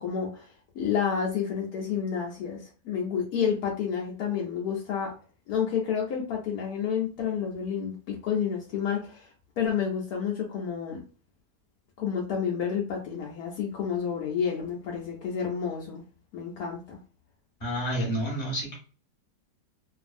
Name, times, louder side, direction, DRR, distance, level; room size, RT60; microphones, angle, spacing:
voice 1, 0.0-5.1 5.5-9.3 9.6-11.0 12.0-16.0 16.3-17.0, left 7 dB, 70° left, -1 dB, 1.0 m, -30 dB
voice 2, 17.6-18.7, equal, 20° left, -3 dB, 1.0 m, -29 dB
2.6 x 2.5 x 2.5 m, 0.37 s
omnidirectional pair, 1.8 m